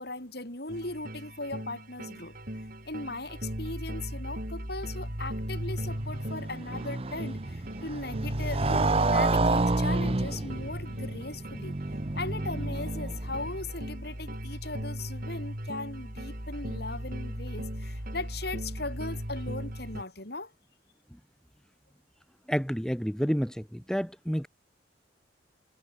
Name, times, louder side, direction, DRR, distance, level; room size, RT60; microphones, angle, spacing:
voice 1, 0.0-2.4 2.9-11.8 12.1-20.5, left 2 dB, 55° left, 7.5 m, -38 dB
sound 1, 0.7-20.0, equal, 50° right, 6.9 m, -37 dB
Motorcycle, 5.4-13.5, right 3 dB, 30° right, 0.7 m, -30 dB
voice 2, 22.5-24.5, equal, 5° left, 3.3 m, -29 dB
head